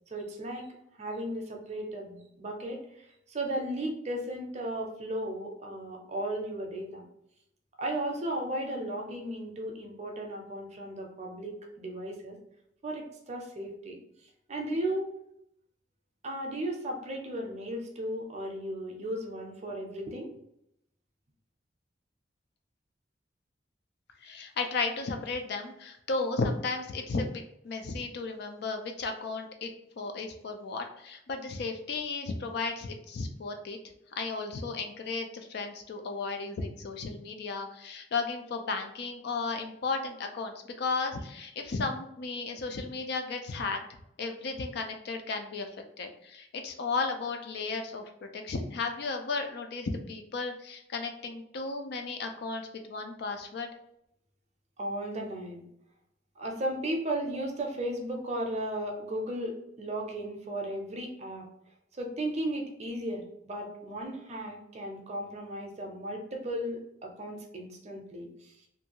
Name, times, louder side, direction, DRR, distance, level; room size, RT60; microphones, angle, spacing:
voice 1, 0.1-0.7 1.0-7.1 7.8-12.4 12.8-14.0 14.5-15.1 16.2-20.3 54.8-55.6 56.4-61.5 61.9-68.5, right 1 dB, 40° right, 1 dB, 0.5 m, -35 dB
voice 2, 24.2-29.7 30.0-33.8 34.2-43.8 44.2-45.7 46.0-53.7, left 4 dB, 60° left, 5 dB, 0.4 m, -34 dB
2.6 x 2.3 x 2.8 m, 0.78 s
head